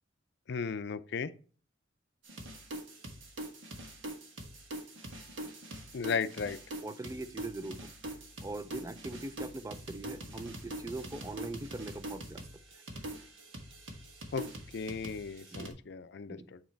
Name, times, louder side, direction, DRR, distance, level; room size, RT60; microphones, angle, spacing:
voice 1, 0.5-1.3 5.9-6.6 14.3-14.4 14.7-16.6, left 5 dB, 60° left, 0.5 m, -35 dB
sound 1, 2.2-15.7, right 1 dB, 85° right, 1.5 m, -44 dB
voice 2, 6.8-7.9 8.4-12.5 15.5-15.7 16.3-16.5, right 2 dB, 15° right, 0.4 m, -41 dB
8.8 x 3.0 x 4.4 m
head